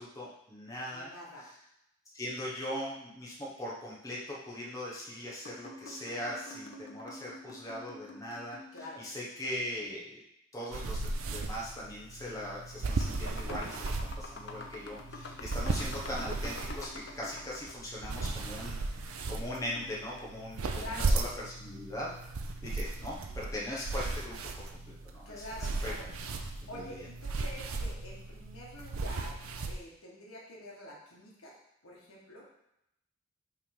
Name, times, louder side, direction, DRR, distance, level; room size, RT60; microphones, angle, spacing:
voice 1, 0.0-1.1 1.4-1.5 2.1-10.2 10.5-18.8 19.0-22.1 22.6-24.4 24.7-25.4 25.8-25.9 26.7-27.1, left 1 dB, 15° left, -5 dB, 1.0 m, -40 dB
voice 2, 0.9-1.5 8.7-9.0 20.8-21.2 25.2-26.1 26.7-29.4 29.7-31.5 31.8-32.5, left 1 dB, 80° left, -3 dB, 1.6 m, -46 dB
sound 1, 5.4-9.2 10.6-11.5 12.3-12.4 12.8-17.9 19.6-20.3, left 2 dB, 55° left, 0.7 m, -48 dB
sound 2, 10.7-29.7, right 3 dB, 80° right, 0.6 m, -36 dB
5.7 x 3.4 x 5.3 m, 0.81 s
head